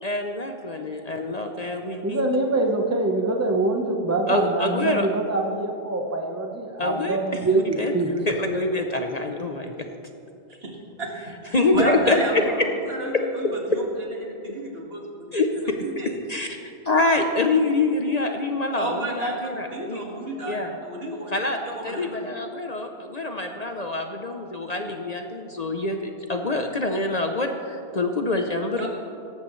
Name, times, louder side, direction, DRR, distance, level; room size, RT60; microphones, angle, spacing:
voice 1, 0.0-2.3 4.3-5.1 6.8-7.9 8.3-9.9 11.5-12.4 13.7-13.8 15.3-15.5 16.3-16.5 16.8-20.0 20.5-20.7 21.3-21.6 21.8-28.9, left 2 dB, 40° left, 4 dB, 0.8 m, -25 dB
voice 2, 2.0-8.1, right 2 dB, 15° right, 2 dB, 1.0 m, -24 dB
voice 3, 10.5-11.2 11.5-16.2 18.8-21.3 21.6-22.2 28.8-28.9, right 1 dB, 60° right, -1 dB, 2.2 m, -32 dB
18.0 x 14.0 x 3.2 m, 2.7 s
omnidirectional pair, 1.1 m